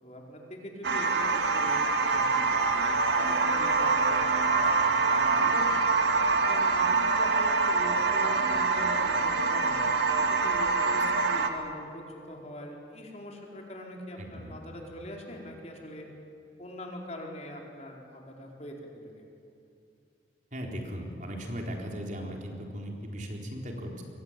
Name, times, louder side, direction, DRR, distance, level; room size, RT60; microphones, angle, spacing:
voice 1, 0.0-5.7 6.3-9.8 10.2-16.1 16.6-19.2, left 1 dB, 40° left, 0 dB, 4.5 m, -43 dB
sound 1, 0.8-11.5, right 4 dB, 80° right, 2.3 m, -25 dB
voice 2, 14.2-14.6 20.5-24.0, equal, 45° right, 1 dB, 4.0 m, -37 dB
27.5 x 23.5 x 9.0 m, 2.5 s
head